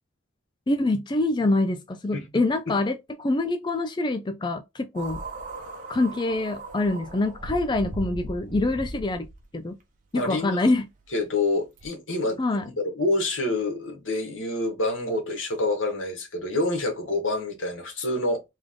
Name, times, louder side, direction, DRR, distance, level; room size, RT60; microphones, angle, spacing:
voice 1, 0.7-5.2 5.9-9.3 9.5-9.8 10.1-10.9 12.4-12.6, left 2 dB, 20° left, 0.4 m, -25 dB
voice 2, 2.1-2.8 10.2-10.6 11.1-18.4, left 2 dB, 75° left, 1.8 m, -27 dB
sound 1, 4.9-9.4 10.3-10.4 11.8-11.9, right 2 dB, 40° right, 1.0 m, -38 dB
3.6 x 3.5 x 3.6 m
head